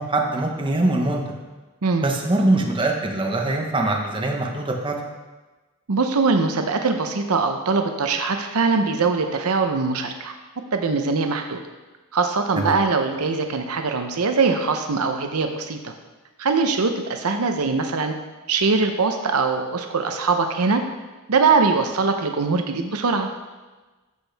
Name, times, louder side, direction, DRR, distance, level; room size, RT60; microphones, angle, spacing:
voice 1, 0.0-1.4 2.0-4.9 12.5-12.8, right 2 dB, 25° right, 1 dB, 1.1 m, -23 dB
voice 2, 5.9-10.3 10.7-11.6 12.1-15.9 16.4-18.1 18.5-20.8 21.3-23.3, right 4 dB, 85° right, 5 dB, 0.8 m, -22 dB
13.5 x 6.3 x 3.4 m, 1.2 s
head